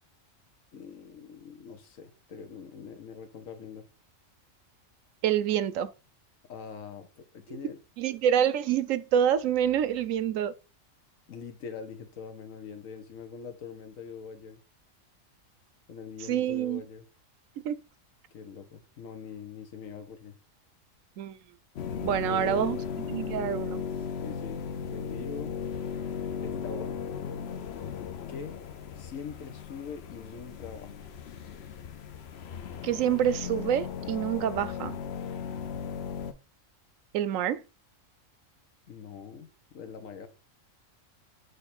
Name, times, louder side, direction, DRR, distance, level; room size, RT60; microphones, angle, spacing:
voice 1, 0.7-3.8 6.5-7.8 11.3-14.6 15.9-17.0 18.3-20.3 22.3-22.8 24.2-24.6 24.9-25.5 26.4-27.1 28.3-28.6 29.0-30.9 38.9-40.3, left 6 dB, 80° left, 1.5 m, -43 dB
voice 2, 5.2-5.9 8.0-10.5 16.3-16.8 17.6-17.8 21.2-21.4 22.0-22.8 23.1-23.8 32.8-35.0 37.1-37.6, right 9 dB, 80° right, 1.0 m, -27 dB
sound 1, 21.8-36.3, left 7 dB, 60° left, 0.9 m, -37 dB
8.2 x 3.4 x 4.2 m
omnidirectional pair, 1.4 m